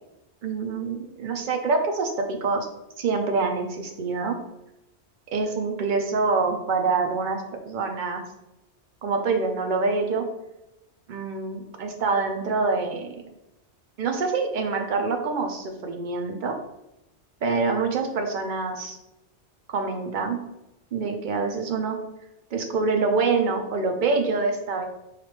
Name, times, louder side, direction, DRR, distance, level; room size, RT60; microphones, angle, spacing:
voice 1, 0.4-2.7 3.0-4.4 5.3-8.2 9.0-10.3 11.1-13.2 14.0-16.6 17.4-19.0 19.7-20.4 20.9-22.0 22.5-24.9, right 4 dB, 55° right, 4 dB, 0.6 m, -26 dB
4.6 x 2.4 x 3.2 m, 0.90 s
omnidirectional pair, 1.2 m